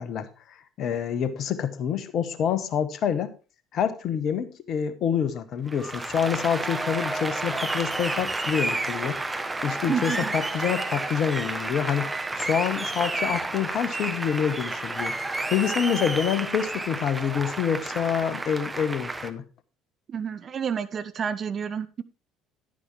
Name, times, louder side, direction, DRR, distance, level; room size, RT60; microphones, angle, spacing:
voice 1, 0.0-3.3 3.7-9.2 9.6-12.1 12.4-19.4, left 8 dB, 45° left, 13 dB, 1.1 m, -27 dB
Applause, 5.7-19.3, right 2 dB, 15° right, 1.1 m, -31 dB
voice 2, 9.9-10.3 20.1-22.0, right 7 dB, 40° right, 11 dB, 0.8 m, -30 dB
11.0 x 10.0 x 3.2 m, 0.33 s
figure-of-eight pair, 55°, 0 cm